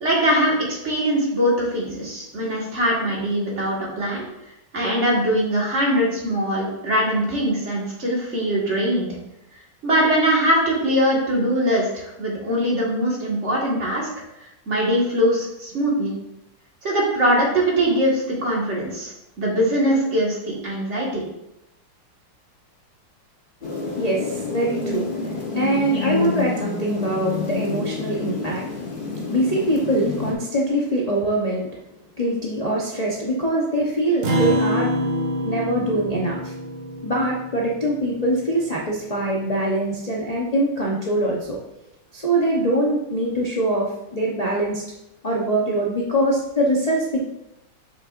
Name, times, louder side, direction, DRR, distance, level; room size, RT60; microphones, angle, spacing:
voice 1, 0.0-4.3 4.7-9.1 9.8-14.1 14.7-16.1 16.8-21.2, equal, 35° right, -4 dB, 1.9 m, -22 dB
sound 1, 23.6-30.3, left 4 dB, 30° left, 1.0 m, -28 dB
voice 2, 24.0-28.7 29.3-31.7 32.2-34.9 35.4-36.5 37.0-41.6 42.1-44.8 45.2-47.2, right 1 dB, 70° left, -4 dB, 0.3 m, -23 dB
Acoustic guitar, 34.2-38.9, equal, 55° right, 1.5 m, -26 dB
6.5 x 6.3 x 2.5 m, 0.86 s
omnidirectional pair, 2.3 m